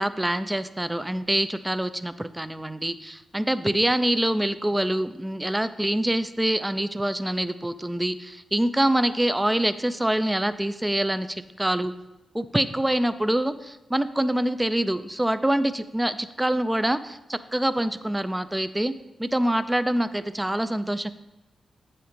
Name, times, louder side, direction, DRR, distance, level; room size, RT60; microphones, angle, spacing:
voice 1, 0.0-11.9 12.3-18.9 19.2-21.1, right 1 dB, 10° right, 12 dB, 0.4 m, -25 dB
8.2 x 4.4 x 5.0 m, 0.97 s
cardioid pair, 60°, 0 cm